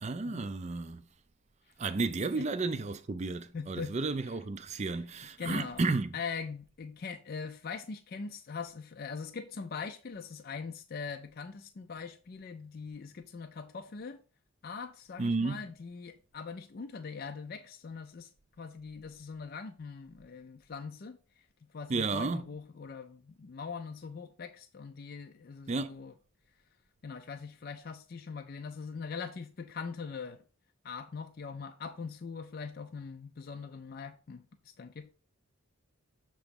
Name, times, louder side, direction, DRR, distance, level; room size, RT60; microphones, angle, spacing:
voice 1, 0.0-1.0 1.8-6.2 15.2-15.7 21.9-22.4 25.7-26.0, right 3 dB, 30° right, 0.4 m, -32 dB
voice 2, 3.5-4.0 5.4-5.8 6.1-14.2 14.6-18.3 18.6-21.4 21.7-26.1 27.0-30.4 30.8-35.1, left 5 dB, 45° left, 0.4 m, -42 dB
6.8 x 3.0 x 5.1 m
head